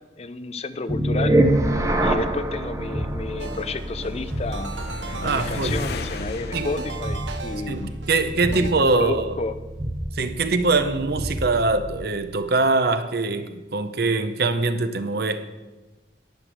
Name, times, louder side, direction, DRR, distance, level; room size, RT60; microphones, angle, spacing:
voice 1, 0.2-1.4 2.0-4.7 5.2-8.0 8.5-9.5, left 3 dB, 35° left, 0.5 m, -31 dB
sound 1, 0.9-12.0, right 1 dB, 15° right, 0.7 m, -27 dB
sound 2, 2.7-8.2, left 3 dB, 60° left, 0.8 m, -37 dB
sound 3, 3.4-8.7, right 4 dB, 85° right, 1.1 m, -38 dB
voice 2, 5.2-5.8 6.5-6.7 7.7-9.4 10.1-15.5, right 3 dB, 60° right, 0.7 m, -23 dB
11.0 x 6.2 x 6.3 m
head